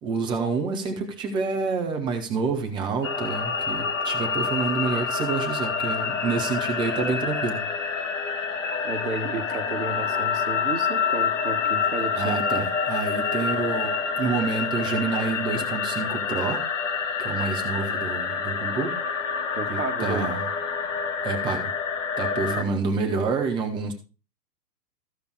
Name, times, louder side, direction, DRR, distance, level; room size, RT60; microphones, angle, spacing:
voice 1, 0.0-7.6 12.2-16.6 17.2-19.0 19.7-20.5 21.2-21.7 22.2-23.9, right 4 dB, 10° right, 5 dB, 0.7 m, -28 dB
sound 1, 3.0-22.6, left 5 dB, 50° left, 1.3 m, -27 dB
voice 2, 8.7-12.7 19.6-20.3 22.5-22.6, right 4 dB, 60° right, 10 dB, 1.5 m, -32 dB
14.5 x 5.2 x 4.6 m, 0.33 s
figure-of-eight pair, 120°, 49 cm